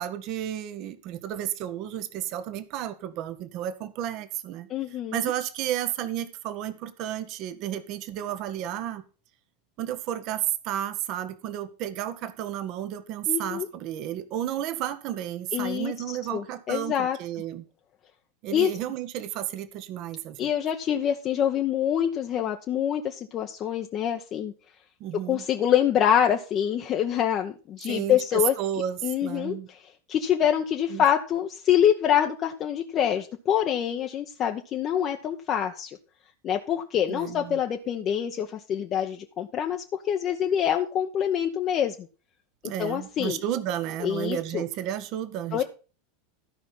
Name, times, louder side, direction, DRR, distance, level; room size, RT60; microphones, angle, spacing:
voice 1, 0.0-4.7 5.1-9.0 9.8-17.6 18.4-20.5 25.0-25.4 27.9-29.7 30.9-31.0 37.1-37.6 42.6-45.6, right 11 dB, 45° right, 12 dB, 1.2 m, -32 dB
voice 2, 4.7-5.3 13.3-13.7 15.5-15.9 16.3-17.2 18.5-18.7 20.4-24.5 25.3-28.5 29.0-29.8 30.1-35.9 36.4-39.8 40.1-41.9 42.8-43.4 44.0-44.6 45.5-45.6, left 9 dB, 35° left, 3 dB, 0.9 m, -25 dB
13.0 x 5.7 x 5.6 m, 0.35 s
figure-of-eight pair, 85°, 0 cm